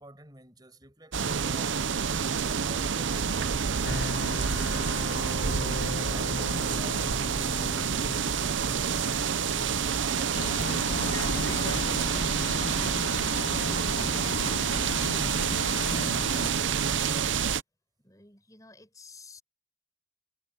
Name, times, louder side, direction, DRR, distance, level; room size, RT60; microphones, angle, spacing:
voice 1, 0.0-2.2 2.5-3.9, right 1 dB, 20° right, 7.0 m, -50 dB
sound 1, 1.1-17.6, right 6 dB, 80° right, 0.7 m, -28 dB
sound 2, 3.8-16.7, left 3 dB, 65° left, 0.8 m, -42 dB
Bus, 10.3-16.5, left 3 dB, 85° left, 1.5 m, -35 dB
voice 2, 18.0-19.4, left 3 dB, 20° left, 7.4 m, -53 dB
head